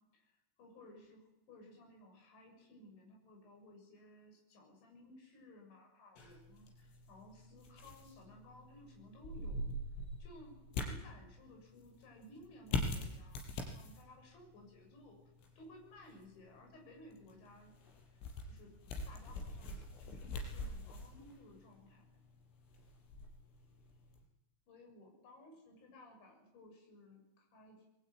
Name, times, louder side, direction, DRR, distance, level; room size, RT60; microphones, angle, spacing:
voice 1, 0.1-9.8 10.2-15.2 15.6-17.7 18.1-18.7 19.1-22.0 24.7-27.9, left 1 dB, 65° left, 1 dB, 9.2 m, -58 dB
sound 1, 6.2-24.2, left 2 dB, 90° left, 7.7 m, -45 dB
28.0 x 22.0 x 9.4 m, 0.90 s
omnidirectional pair, 5.6 m